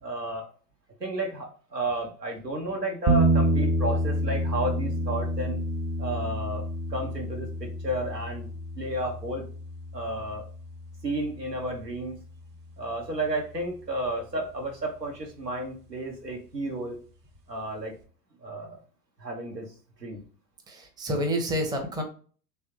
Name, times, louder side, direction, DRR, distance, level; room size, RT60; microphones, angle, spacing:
voice 1, 0.0-0.5 1.0-5.6 6.0-8.5 8.8-9.4 9.9-10.4 11.0-12.2 12.8-17.0 17.5-17.9 18.4-18.8 19.2-19.7 20.0-20.2, right 1 dB, 90° right, 1 dB, 1.2 m, -32 dB
sound 1, 3.1-13.1, right 1 dB, 35° right, 0.9 m, -29 dB
voice 2, 20.7-22.0, equal, 10° right, 3 dB, 0.7 m, -28 dB
3.4 x 3.2 x 3.0 m, 0.41 s
figure-of-eight pair, 90°, 47 cm